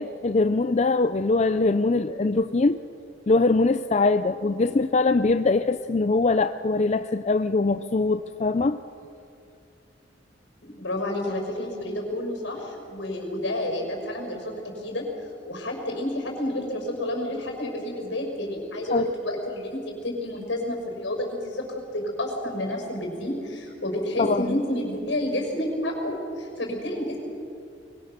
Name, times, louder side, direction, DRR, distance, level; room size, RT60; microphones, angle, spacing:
voice 1, 0.0-2.8 3.3-8.8 18.9-19.1 24.2-24.6, left 3 dB, 35° left, 11 dB, 0.4 m, -22 dB
voice 2, 10.6-27.2, left 1 dB, 75° left, 2 dB, 5.8 m, -30 dB
24.5 x 23.0 x 6.7 m, 2.6 s
head